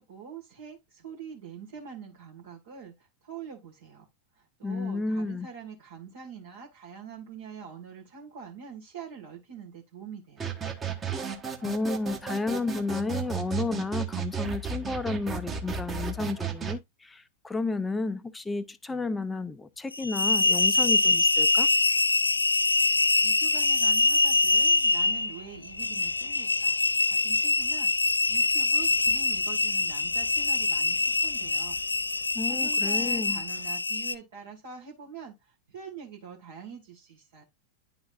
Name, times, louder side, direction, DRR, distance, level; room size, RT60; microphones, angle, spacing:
voice 1, 0.0-4.1 4.3-10.5 23.2-26.8 27.1-31.8 32.1-37.4, right 6 dB, 60° right, 1.7 m, -44 dB
voice 2, 4.6-5.5 11.6-21.7 32.3-33.4, left 3 dB, 10° left, 0.6 m, -32 dB
sound 1, 10.4-16.8, right 6 dB, 20° right, 1.2 m, -34 dB
sound 2, 19.9-34.1, left 3 dB, 80° left, 0.3 m, -24 dB
sound 3, 23.5-33.7, equal, 90° right, 2.2 m, -54 dB
10.5 x 4.0 x 2.5 m
figure-of-eight pair, 90°, 0 cm